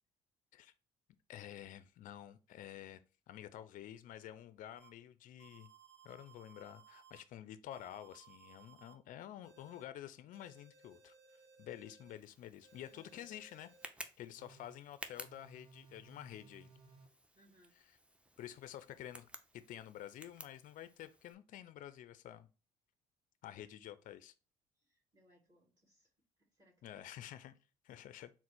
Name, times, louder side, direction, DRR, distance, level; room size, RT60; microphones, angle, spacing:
voice 1, 1.3-3.0 3.3-5.7 6.0-11.1 11.6-13.7 14.2-16.7 18.4-19.3 19.5-22.5 23.4-24.3 26.8-27.6 27.8-28.3, left 11 dB, 60° left, 0.4 m, -50 dB
sound 1, 4.8-4.9 5.4-7.2 7.7-8.9 9.4-9.8 10.3-12.1 12.6-13.9 14.4-14.8 15.2-17.1, right 5 dB, 90° right, 0.9 m, -62 dB
Tick, 12.1-21.3, right 1 dB, 5° right, 0.6 m, -55 dB
voice 2, 12.9-13.3 17.4-17.8 24.8-26.1 26.5-27.1, equal, 25° right, 2.0 m, -69 dB
3.9 x 2.0 x 4.3 m
hypercardioid pair, 60°, 16 cm